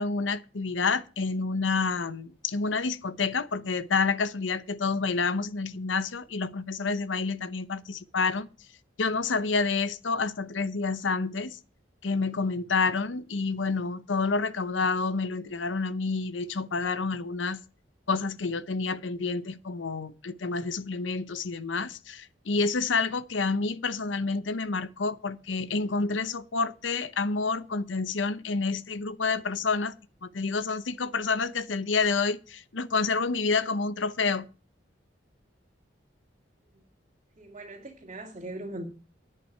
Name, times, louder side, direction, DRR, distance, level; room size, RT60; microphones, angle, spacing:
voice 1, 0.0-8.5 9.0-11.6 12.0-17.6 18.1-29.9 30.2-34.5, left 4 dB, 90° left, 0.8 m, -28 dB
voice 2, 37.4-38.9, right 1 dB, 35° right, 2.2 m, -40 dB
10.5 x 5.8 x 8.6 m
head